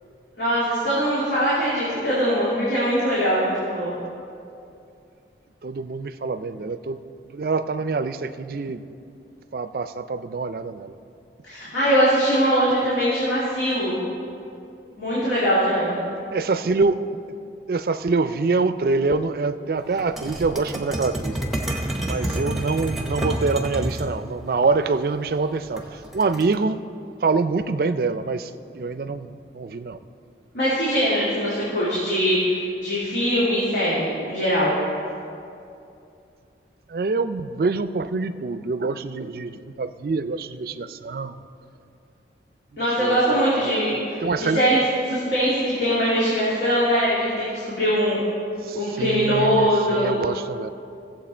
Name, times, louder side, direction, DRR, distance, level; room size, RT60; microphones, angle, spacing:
voice 1, 0.4-3.9 11.4-14.0 15.0-16.0 30.5-34.7 42.8-44.8 45.1-48.2 48.7-50.2, equal, 75° left, -10 dB, 2.9 m, -22 dB
voice 2, 5.6-7.0 7.3-8.8 9.5-11.0 16.3-17.0 17.7-21.3 22.0-26.8 27.2-30.0 36.9-41.3 43.0-43.7 44.2-44.6 48.6-50.7, right 4 dB, 55° right, 12 dB, 0.4 m, -25 dB
sound 1, 20.0-24.1 25.8-26.5, right 1 dB, ahead, 0.9 m, -28 dB
16.5 x 7.7 x 4.4 m, 2.6 s
head